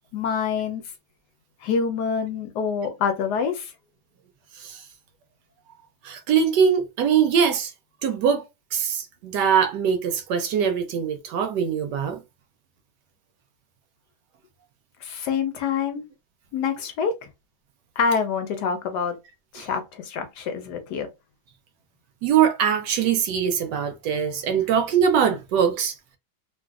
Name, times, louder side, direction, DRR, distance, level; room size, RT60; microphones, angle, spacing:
voice 1, 0.1-0.8 1.6-3.7 15.0-16.0 16.5-17.3 18.0-19.2 19.5-21.1, left 6 dB, 75° left, 1.1 m, -26 dB
voice 2, 6.0-7.7 8.0-8.4 8.7-12.2 19.6-19.7 22.2-26.0, right 7 dB, 75° right, 1.1 m, -22 dB
3.1 x 2.4 x 2.3 m
omnidirectional pair, 2.1 m